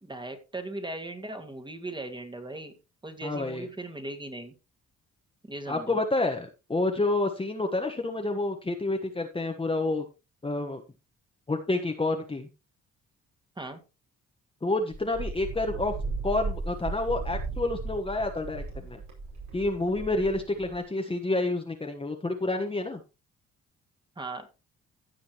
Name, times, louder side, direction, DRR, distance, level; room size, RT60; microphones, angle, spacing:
voice 1, 0.0-2.7 3.0-4.5 5.5-6.0 13.6-13.8 24.2-24.5, right 2 dB, 15° right, 5 dB, 2.0 m, -38 dB
voice 2, 3.2-3.7 5.7-10.0 10.4-10.8 11.5-12.5 14.6-15.9 16.2-19.0 19.5-23.0, left 2 dB, 20° left, 4 dB, 1.3 m, -29 dB
Wind, 14.9-20.8, right 3 dB, 65° right, 5.3 m, -36 dB
15.5 x 6.2 x 3.0 m, 0.29 s
cardioid pair, 90°, 30 cm